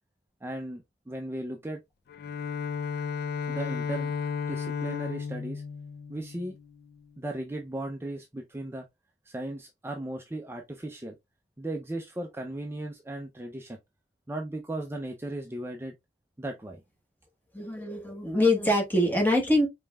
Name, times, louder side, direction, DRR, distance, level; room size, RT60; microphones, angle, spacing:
voice 1, 0.4-1.8 3.5-4.1 4.5-5.6 6.1-6.5 7.2-8.9 9.3-11.1 11.6-13.8 14.3-15.9 16.4-16.8, right 1 dB, 15° right, 0.5 m, -36 dB
Bowed string instrument, 2.1-7.0, left 6 dB, 60° left, 0.4 m, -34 dB
voice 2, 17.5-19.7, left 1 dB, 10° left, 1.4 m, -24 dB
5.1 x 3.3 x 2.3 m
head